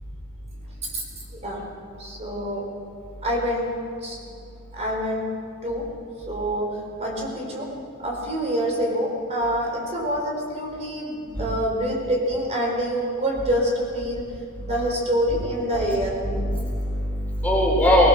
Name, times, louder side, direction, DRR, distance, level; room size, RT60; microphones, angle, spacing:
voice 1, 2.0-2.6 3.2-4.2 4.7-5.3 5.6-5.9 6.3-7.7 8.0-14.3 14.6-16.2, equal, 30° right, -1 dB, 4.6 m, -26 dB
voice 2, 16.2-18.1, equal, 5° left, -4 dB, 4.2 m, -21 dB
20.0 x 20.0 x 6.7 m, 2.5 s
head